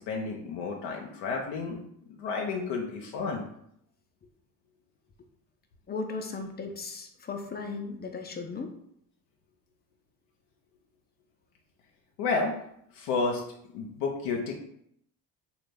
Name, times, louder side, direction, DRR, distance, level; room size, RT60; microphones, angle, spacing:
voice 1, 0.0-3.4 12.2-12.6 12.9-13.4 13.7-14.5, left 4 dB, 80° left, 1 dB, 0.6 m, -31 dB
voice 2, 5.9-8.7, left 4 dB, 25° left, 4 dB, 0.5 m, -36 dB
3.0 x 2.3 x 3.5 m, 0.72 s
supercardioid pair, 85°, 40 cm